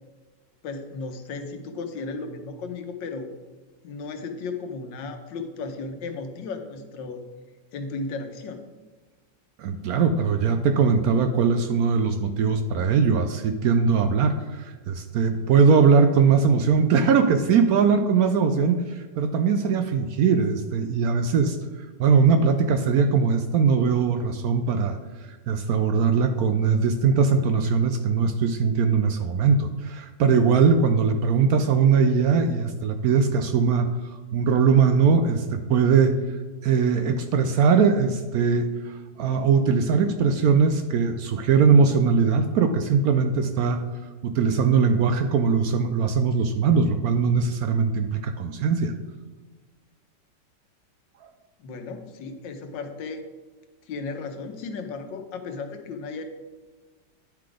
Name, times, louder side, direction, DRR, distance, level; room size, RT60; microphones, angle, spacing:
voice 1, 0.6-3.3 3.8-7.2 7.7-8.6 51.6-53.2 53.9-56.2, left 4 dB, 90° left, 6 dB, 1.5 m, -35 dB
voice 2, 9.6-21.6 22.0-25.0 25.5-36.2 36.6-43.8 44.2-48.9, right 5 dB, 70° right, 7 dB, 0.9 m, -21 dB
10.5 x 3.9 x 4.9 m, 1.3 s
omnidirectional pair, 1.9 m